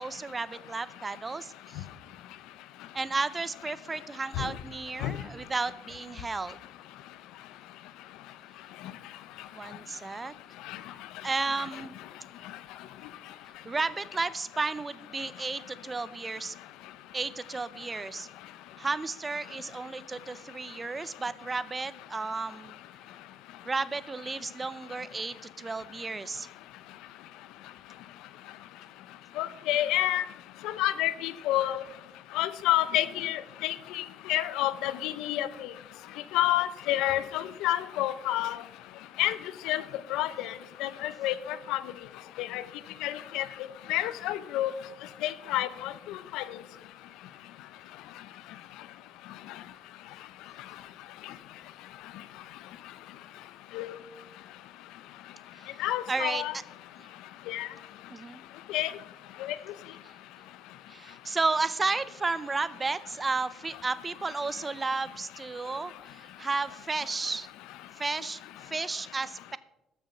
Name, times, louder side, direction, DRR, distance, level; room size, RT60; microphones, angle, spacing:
voice 1, 0.0-1.9 2.9-6.6 9.5-10.3 11.2-11.9 13.6-16.6 17.1-18.3 18.8-22.8 23.6-26.5 55.6-56.4 57.0-57.1 58.1-58.4 60.0-60.1 60.9-67.5 68.0-69.6, right 3 dB, 20° right, 16 dB, 0.5 m, -33 dB
voice 2, 29.4-30.2 30.6-31.8 32.3-35.7 36.3-38.6 39.2-39.4 39.6-39.8 40.1-40.5 40.8-41.8 42.4-42.6 43.0-43.5 43.9-44.7 45.2-46.4 53.7-53.9 55.8-56.5 57.5-57.7 58.7-58.9 59.4-59.6, left 14 dB, 80° left, 15 dB, 0.6 m, -29 dB
12.5 x 7.0 x 5.5 m, 0.92 s
cardioid pair, 110°, 0 cm